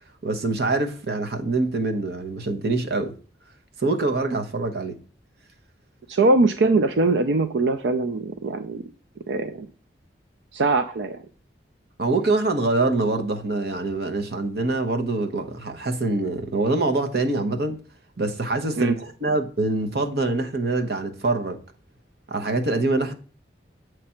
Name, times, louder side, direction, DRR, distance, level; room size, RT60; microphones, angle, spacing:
voice 1, 0.2-3.1 3.8-5.0 12.0-17.8 18.2-21.6 22.3-23.1, right 2 dB, 60° right, 1.0 m, -24 dB
voice 2, 6.1-8.8 9.3-9.7 10.5-11.2 18.8-18.9, right 3 dB, 90° right, 0.5 m, -22 dB
7.5 x 3.3 x 5.7 m
head